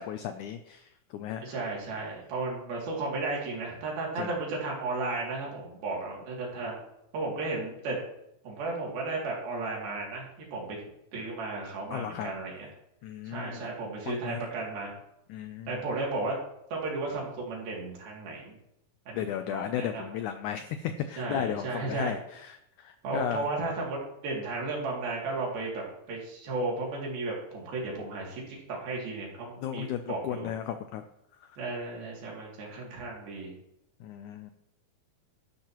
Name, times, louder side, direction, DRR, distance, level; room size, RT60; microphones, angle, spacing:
voice 1, 0.0-1.6 4.2-4.3 11.9-12.3 13.0-13.7 14.1-14.5 15.3-15.8 19.1-23.4 29.6-31.0 34.0-34.5, left 10 dB, 85° left, 8 dB, 1.7 m, -35 dB
voice 2, 1.4-6.8 7.1-8.0 8.4-10.8 11.1-12.7 13.3-14.9 15.7-16.4 16.7-18.6 19.1-20.0 21.2-22.1 23.0-30.5 31.6-33.5, right 3 dB, 85° right, -3 dB, 4.5 m, -34 dB
12.0 x 11.5 x 3.0 m, 0.82 s
omnidirectional pair, 4.2 m